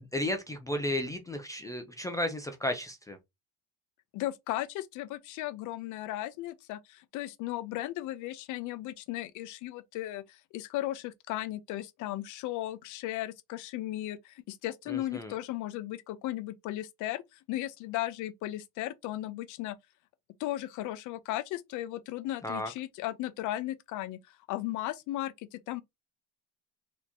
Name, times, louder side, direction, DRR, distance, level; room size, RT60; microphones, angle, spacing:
voice 1, 0.0-3.2 14.9-15.3 22.4-22.7, left 1 dB, 10° left, 0.4 m, -33 dB
voice 2, 4.1-19.8 20.4-25.8, left 15 dB, 55° left, 0.6 m, -36 dB
4.3 x 2.8 x 2.8 m
cardioid pair, 150°, 37 cm